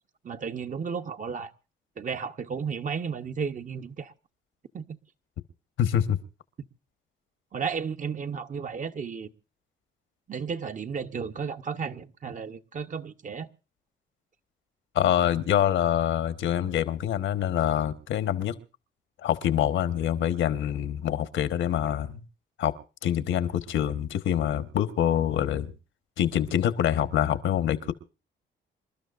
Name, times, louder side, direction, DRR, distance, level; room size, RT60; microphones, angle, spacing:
voice 1, 0.2-1.5 2.0-4.1 4.7-5.0 7.5-9.3 10.3-13.5, right 6 dB, 40° right, 1.0 m, -33 dB
voice 2, 5.8-6.2 14.9-18.5 19.2-22.2 22.6-22.7 23.0-25.7 26.2-27.9, left 10 dB, 75° left, 1.3 m, -25 dB
27.5 x 12.5 x 2.5 m
cardioid pair, 90°, 20 cm